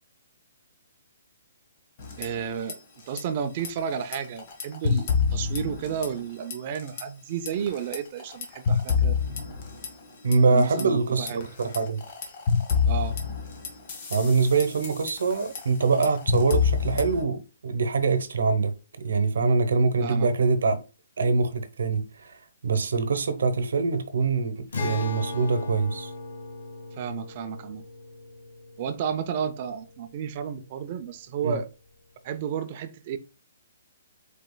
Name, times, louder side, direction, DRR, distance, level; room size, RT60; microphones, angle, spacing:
sound 1, 2.0-2.7 3.0-3.2 3.6-6.3 6.5-7.0 7.5-10.8 11.3-17.2, left 6 dB, 25° left, 1.0 m, -28 dB
voice 1, 2.2-2.8 3.1-9.2 10.5-11.5 12.8-13.2 20.0-20.3 26.9-27.8 28.8-31.7 32.2-33.2, right 7 dB, 25° right, 0.4 m, -32 dB
voice 2, 10.2-12.0 14.1-18.7 19.0-20.8 21.2-22.4 22.6-26.1 31.4-31.6, right 4 dB, 70° right, 0.8 m, -24 dB
Acoustic guitar, 24.7-30.2, left 3 dB, 70° left, 1.4 m, -37 dB
5.2 x 4.3 x 2.2 m
hypercardioid pair, 180°, 0 cm